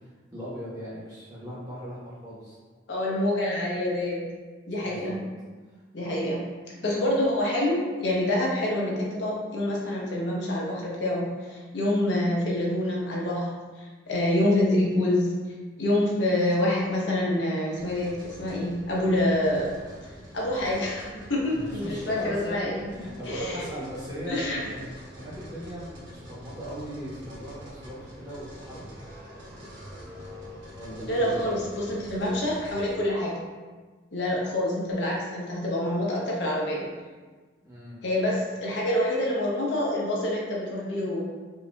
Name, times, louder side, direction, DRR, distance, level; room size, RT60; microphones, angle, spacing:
voice 1, 0.3-2.6 4.8-5.2 21.5-22.6 22.9-28.9 30.7-31.6 37.6-38.0, equal, 20° right, -9 dB, 1.1 m, -38 dB
voice 2, 2.9-4.2 4.7-5.2 5.9-6.4 6.8-13.5 13.8-15.3 15.8-19.7 20.3-22.9 23.3-23.7 24.3-24.6 31.1-33.3 34.1-36.9 38.0-41.2, left 1 dB, 75° left, -4 dB, 0.8 m, -26 dB
sound 1, 17.7-33.0, equal, 75° right, 1.1 m, -45 dB
4.8 x 2.6 x 2.2 m, 1.4 s
head